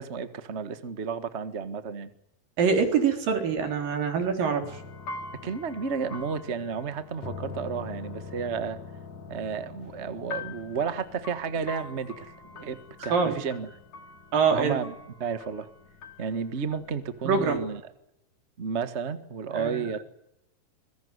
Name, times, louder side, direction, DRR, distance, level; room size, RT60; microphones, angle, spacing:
voice 1, 0.0-2.1 5.4-8.8 9.3-12.3 12.6-13.7 14.5-14.9 15.2-15.7 16.2-17.8 18.6-20.0, right 6 dB, 55° right, 11 dB, 0.7 m, -32 dB
voice 2, 2.6-4.8 13.1-13.4 14.3-14.8 17.3-17.6 19.5-19.8, right 5 dB, 70° right, 5 dB, 5.4 m, -24 dB
sound 1, 4.6-17.8, left 4 dB, 50° left, 4.0 m, -43 dB
24.0 x 22.0 x 9.6 m, 0.80 s
omnidirectional pair, 4.1 m